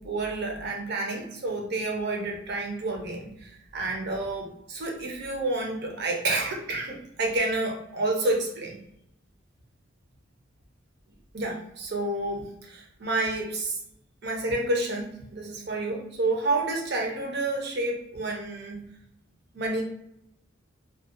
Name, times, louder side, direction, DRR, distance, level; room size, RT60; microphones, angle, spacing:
voice 1, 0.0-8.8 11.3-13.8 14.2-18.9 19.5-19.8, right 2 dB, 55° right, 1 dB, 0.6 m, -29 dB
2.6 x 2.2 x 2.4 m, 0.77 s
head